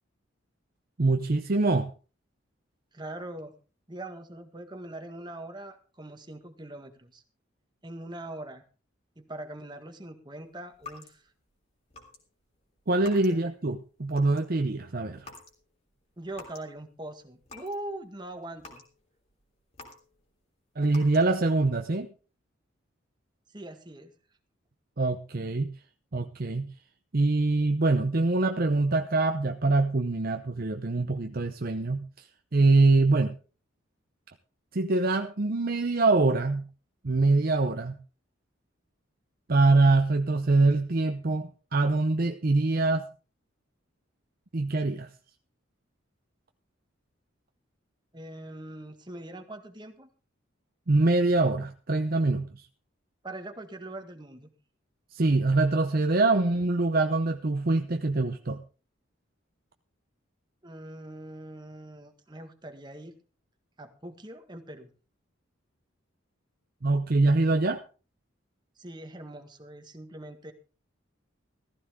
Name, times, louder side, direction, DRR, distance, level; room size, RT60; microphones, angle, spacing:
voice 1, 1.0-1.9 12.9-15.3 20.8-22.1 25.0-25.7 26.1-26.7 27.1-32.3 32.5-33.3 34.7-36.7 37.0-38.0 39.5-43.1 44.5-45.1 50.9-52.6 55.1-58.6 66.8-67.8, right 2 dB, 50° right, 6 dB, 0.7 m, -24 dB
voice 2, 2.9-3.5 3.9-7.2 7.8-8.6 9.2-11.3 13.3-13.5 16.2-18.8 23.5-24.1 48.1-50.1 53.2-54.5 60.6-63.1 63.8-64.9 68.8-70.5, right 1 dB, 20° right, 6 dB, 1.7 m, -42 dB
sound 1, 10.7-11.5 11.9-12.2 12.5-13.6 13.9-14.6 15.2-15.6 15.9-16.7 17.1-17.8 18.2-20.4 20.9-21.5, left 3 dB, 35° left, 3.4 m, -49 dB
15.0 x 15.0 x 3.7 m, 0.35 s
head